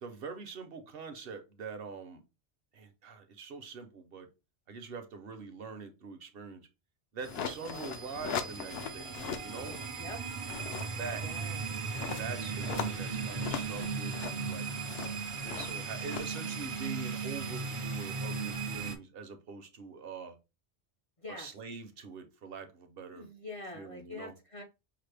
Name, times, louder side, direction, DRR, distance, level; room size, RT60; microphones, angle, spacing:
voice 1, 0.0-2.2 2.7-4.3 4.7-6.6 7.1-9.1 9.4-9.8 11.0-11.3 12.2-14.7 15.4-20.4 21.3-23.3 23.7-24.3, right 5 dB, 60° right, 0.8 m, -44 dB
sound 1, 7.2-9.9 10.3-17.4, left 7 dB, 70° left, 0.8 m, -41 dB
sound 2, 7.2-18.9, right 5 dB, 40° right, 0.4 m, -37 dB
voice 2, 7.6-8.2 9.6-10.2 11.2-11.6 21.2-21.5 23.1-24.6, left 2 dB, 40° left, 0.5 m, -45 dB
5.7 x 2.0 x 3.3 m
omnidirectional pair, 1.2 m